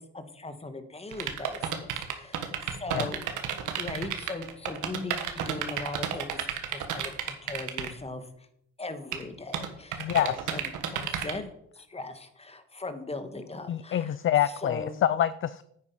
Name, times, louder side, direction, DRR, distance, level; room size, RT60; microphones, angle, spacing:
voice 1, 0.0-2.5 2.8-3.2 3.7-8.5 8.8-14.2 14.4-15.0, left 2 dB, 20° left, 9 dB, 1.6 m, -39 dB
sound 1, 1.1-7.9 9.1-9.2 9.5-11.3, right 9 dB, 85° right, 1.6 m, -31 dB
voice 2, 10.0-10.3 13.7-15.6, left 11 dB, 45° left, 15 dB, 0.5 m, -26 dB
9.7 x 8.9 x 5.5 m, 0.74 s
cardioid pair, 90°, 30 cm